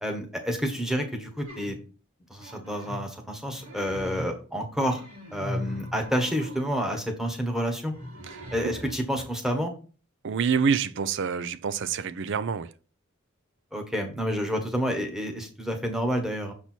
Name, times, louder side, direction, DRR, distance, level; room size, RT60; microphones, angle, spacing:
voice 1, 0.0-1.8 2.3-5.0 5.3-7.9 8.5-9.7 13.7-16.5, equal, ahead, 1.2 m, -29 dB
sound 1, 1.5-1.8 2.3-3.1 3.5-4.4 4.8-6.7 7.8-9.2, left 1 dB, 90° right, 3.1 m, -39 dB
voice 2, 10.2-12.7, right 6 dB, 60° right, 0.5 m, -27 dB
6.9 x 4.3 x 4.4 m
head